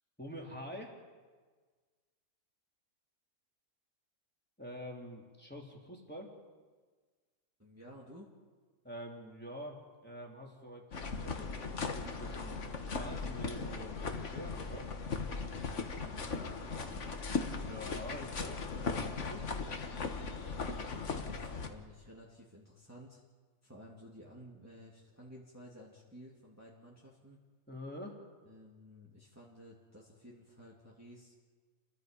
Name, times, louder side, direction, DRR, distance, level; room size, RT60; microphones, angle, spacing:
voice 1, 0.2-1.0 4.6-6.3 8.8-12.6 12.9-14.9 17.5-19.5 27.7-28.3, equal, 5° left, -1 dB, 3.4 m, -46 dB
voice 2, 7.6-8.3 15.8-17.1 20.5-23.2 23.6-27.4 28.5-31.3, equal, 10° right, -5 dB, 2.7 m, -54 dB
sound 1, 10.9-21.7, left 4 dB, 50° left, 1.7 m, -38 dB
29.5 x 22.0 x 5.3 m, 1.4 s
omnidirectional pair, 1.7 m